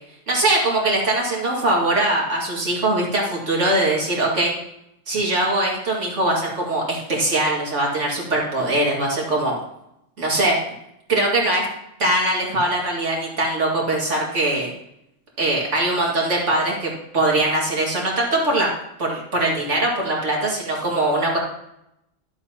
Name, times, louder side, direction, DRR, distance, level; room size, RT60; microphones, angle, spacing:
voice 1, 0.3-4.5 5.1-9.6 10.2-10.6 11.1-11.7 12.0-14.7 15.4-18.7 19.0-21.4, right 2 dB, 70° right, -3 dB, 2.6 m, -21 dB
12.0 x 7.6 x 2.9 m, 0.82 s
omnidirectional pair, 1.3 m